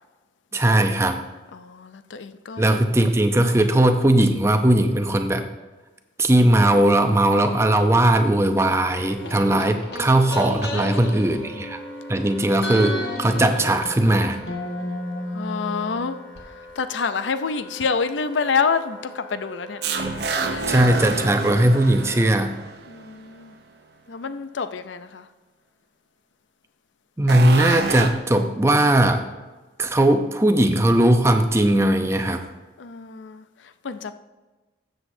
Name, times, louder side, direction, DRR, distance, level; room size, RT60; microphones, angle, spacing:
voice 1, 0.5-1.2 2.6-5.4 6.2-11.8 12.1-14.4 20.4-22.5 27.2-29.2 29.8-32.4, right 1 dB, 15° right, 7 dB, 0.6 m, -19 dB
voice 2, 1.5-3.0 7.3-7.8 10.8-11.7 15.3-16.2 16.8-20.7 22.9-23.5 24.1-25.2 32.8-33.4 33.8-34.1, left 5 dB, 85° left, 11 dB, 0.5 m, -28 dB
Wind instrument woodwind instrument, 8.9-22.3, right 1 dB, 5° left, 1.9 m, -43 dB
sound 1, 9.2-12.2 12.6-16.4 16.7-16.8, left 1 dB, 65° left, 1.6 m, -32 dB
sound 2, 19.8-23.2 27.3-28.1, right 4 dB, 65° right, 0.8 m, -28 dB
13.0 x 7.9 x 2.7 m, 1.2 s
head